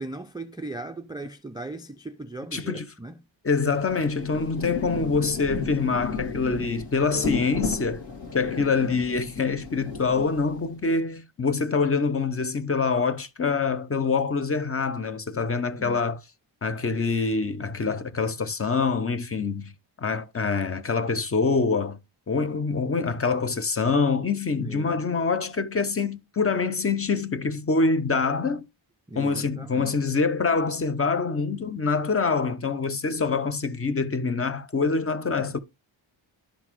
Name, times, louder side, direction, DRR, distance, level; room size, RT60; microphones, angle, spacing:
voice 1, 0.0-3.2 15.8-16.0 24.6-25.0 29.1-30.0, right 2 dB, 10° right, 0.3 m, -38 dB
voice 2, 2.5-2.9 3.4-8.0 8.3-16.2 16.6-19.7 20.0-22.0 22.3-28.7 29.2-35.6, left 4 dB, 30° left, 0.6 m, -25 dB
Rain, 3.7-10.9, left 5 dB, 55° left, 2.2 m, -34 dB
11.5 x 3.9 x 3.0 m
wide cardioid pair, 100°, 49 cm